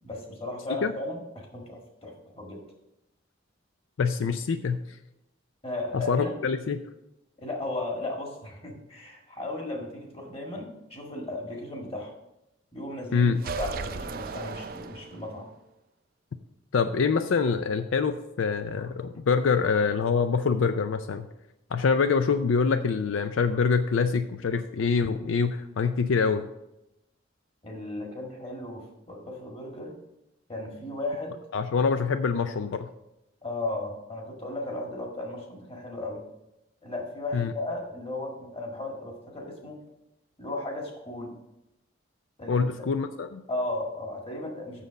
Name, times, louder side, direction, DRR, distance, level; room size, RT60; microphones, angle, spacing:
voice 1, 0.0-2.6 5.6-6.3 7.4-12.1 12.7-15.5 27.6-30.0 30.5-31.4 33.4-36.2 36.8-39.8 40.4-41.3 42.4-42.9 43.5-44.8, left 2 dB, 30° left, 0 dB, 1.8 m, -35 dB
voice 2, 4.0-4.8 5.9-6.8 13.1-13.4 16.7-21.3 21.7-26.5 31.5-32.9 37.3-37.5 42.5-43.4, left 5 dB, 80° left, 10 dB, 0.4 m, -25 dB
sound 1, 13.4-15.5, right 4 dB, 45° right, 0.4 m, -36 dB
7.5 x 6.6 x 5.1 m, 0.88 s
head